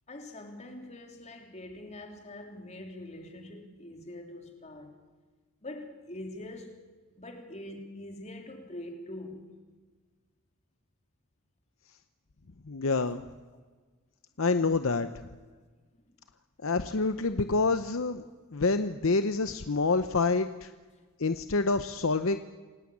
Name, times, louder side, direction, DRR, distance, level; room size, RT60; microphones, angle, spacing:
voice 1, 0.1-4.9 5.6-6.8 7.2-9.5, left 1 dB, 30° left, 3.3 m, -44 dB
voice 2, 12.7-13.2 14.4-15.2 16.6-18.2 18.5-20.7 21.2-22.4, left 3 dB, 65° left, 0.8 m, -27 dB
28.0 x 18.5 x 8.7 m
head